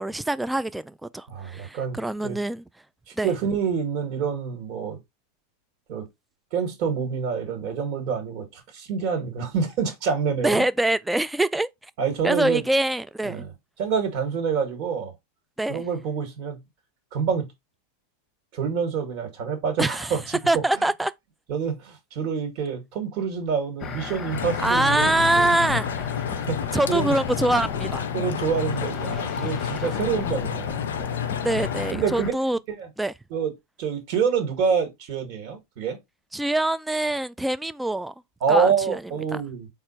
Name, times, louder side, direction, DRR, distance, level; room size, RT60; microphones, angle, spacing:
voice 1, 0.0-2.6 3.2-3.3 10.4-11.7 12.2-13.4 15.6-15.8 19.8-20.1 20.5-21.1 24.6-26.1 26.7-28.0 31.4-32.6 33.0-33.1 36.3-38.1 38.5-39.0, right 1 dB, 5° right, 0.3 m, -24 dB
voice 2, 1.3-2.0 2.2-2.4 3.2-5.0 5.9-6.1 6.5-10.6 12.0-12.6 13.2-13.5 13.8-15.1 15.7-16.6 17.1-17.5 18.5-20.2 21.5-25.5 26.4-26.6 26.9-27.2 28.1-30.8 31.9-32.3 32.7-32.9 33.3-33.5 33.8-36.0 38.4-39.7, right 6 dB, 50° right, 1.8 m, -27 dB
sound 1, 23.8-32.3, left 5 dB, 30° left, 0.9 m, -35 dB
sound 2, 24.3-31.9, left 8 dB, 75° left, 0.4 m, -30 dB
4.3 x 2.4 x 4.3 m
hypercardioid pair, 95°, 0 cm